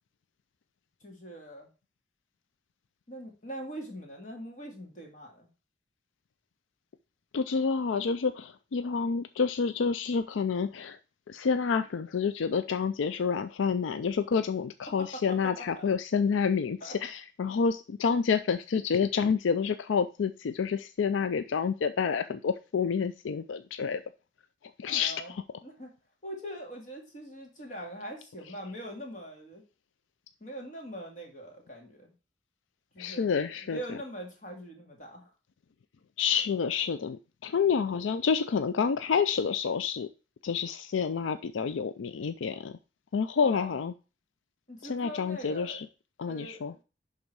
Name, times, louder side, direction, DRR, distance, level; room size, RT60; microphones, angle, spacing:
voice 1, 1.0-1.7 3.1-5.5 15.0-15.2 15.8-15.9 16.8-17.0 24.8-25.3 25.6-25.9 26.2-29.6 30.4-32.1 32.9-33.4 33.7-35.3 43.4-43.8 44.7-45.8 46.3-46.8, equal, 40° left, 1 dB, 2.4 m, -42 dB
voice 2, 7.3-11.0 11.3-24.0 24.8-25.4 33.0-33.8 36.2-40.1 40.4-42.8 43.1-43.9 44.8-45.9 46.2-46.7, left 6 dB, 85° left, 12 dB, 0.4 m, -28 dB
10.5 x 3.8 x 4.6 m, 0.33 s
head